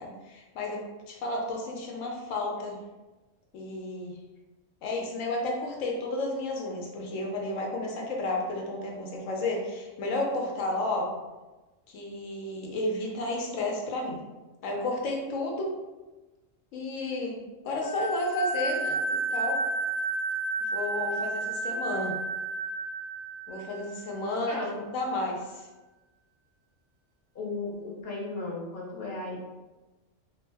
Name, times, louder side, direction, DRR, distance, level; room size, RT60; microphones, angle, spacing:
voice 1, 0.0-2.8 3.5-4.2 4.8-11.2 11.9-14.2 14.6-15.8 16.7-17.3 17.6-19.6 20.7-22.2 23.5-25.7, left 2 dB, 85° left, -1 dB, 1.0 m, -32 dB
sound 1, 17.8-24.3, right 3 dB, 45° right, 0.5 m, -32 dB
voice 2, 27.3-29.4, left 3 dB, 55° left, -5 dB, 0.9 m, -35 dB
2.4 x 2.0 x 3.3 m, 1.1 s
omnidirectional pair, 1.3 m